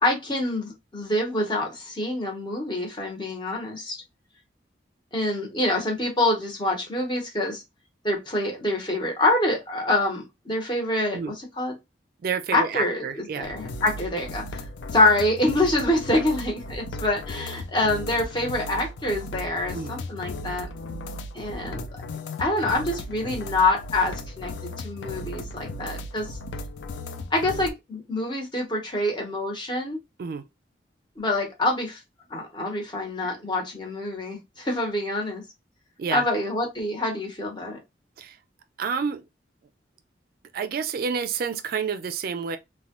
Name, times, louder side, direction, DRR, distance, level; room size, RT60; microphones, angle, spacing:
voice 1, 0.0-4.0 5.1-7.6 8.0-11.7 12.5-14.6 14.9-20.7 21.3-21.9 22.4-26.4 27.3-30.0 31.2-32.0 32.3-35.4 36.1-37.8, left 2 dB, 25° left, 0.9 m, -26 dB
voice 2, 12.2-13.5 19.7-20.0 30.2-30.5 36.0-36.3 38.2-38.4 38.8-39.2 40.5-42.6, right 6 dB, 55° right, 0.3 m, -29 dB
sound 1, 13.4-27.7, left 2 dB, 80° left, 0.4 m, -36 dB
2.9 x 2.2 x 2.9 m
head